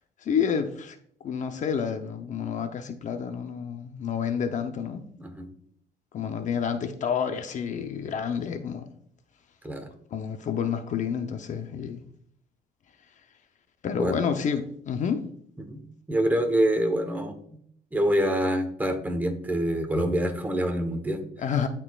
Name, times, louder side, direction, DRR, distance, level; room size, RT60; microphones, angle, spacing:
voice 1, 0.2-1.0 1.2-5.0 6.1-8.8 10.1-12.0 13.8-15.2 21.4-21.7, left 7 dB, 45° left, 0.7 m, -29 dB
voice 2, 16.1-17.6 17.9-21.2, right 1 dB, 10° right, 1.1 m, -26 dB
11.5 x 4.6 x 2.4 m
cardioid pair, 110°, 17 cm